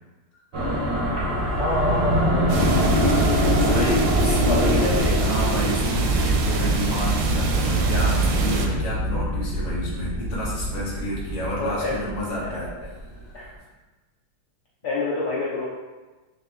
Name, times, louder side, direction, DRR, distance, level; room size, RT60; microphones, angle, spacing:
sound 1, 0.5-13.1, equal, 55° right, 0.6 m, -25 dB
voice 1, 1.5-4.1 4.5-5.2 11.6-12.0 12.4-12.7 13.3-13.5 14.8-15.7, left 3 dB, 70° left, -6 dB, 1.0 m, -28 dB
sound 2, 2.5-8.7, right 3 dB, 75° right, 1.2 m, -24 dB
voice 2, 3.6-12.7 13.3-13.4, equal, 25° left, -7 dB, 0.7 m, -30 dB
4.0 x 2.9 x 3.4 m, 1.2 s
omnidirectional pair, 2.3 m